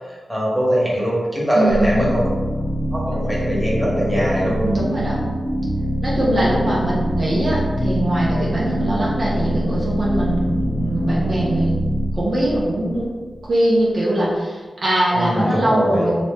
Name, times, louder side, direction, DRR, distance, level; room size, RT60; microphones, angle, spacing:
voice 1, 0.1-2.3 2.9-4.6 15.1-16.1, equal, 5° right, -6 dB, 1.2 m, -21 dB
voice 2, 1.5-2.1 4.6-5.2 6.0-11.7 12.1-13.1 13.4-16.1, right 1 dB, 55° right, -6 dB, 0.8 m, -21 dB
sound 1, 1.7-13.5, equal, 20° left, 0.8 m, -24 dB
3.0 x 2.8 x 3.5 m, 1.4 s
wide cardioid pair, 85°, 0 cm